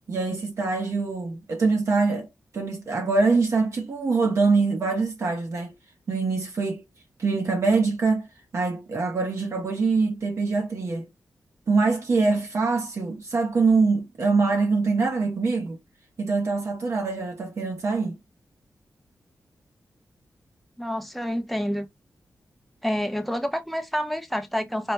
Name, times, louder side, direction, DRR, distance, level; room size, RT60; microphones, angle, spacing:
voice 1, 0.1-2.3 2.5-5.7 6.1-6.8 7.2-8.3 8.5-11.1 11.7-15.8 16.2-18.2, right 4 dB, 55° right, 0.8 m, -24 dB
voice 2, 20.8-21.9 22.8-24.9, equal, ahead, 0.7 m, -28 dB
4.5 x 2.1 x 2.9 m
wide cardioid pair, 135°, 6 cm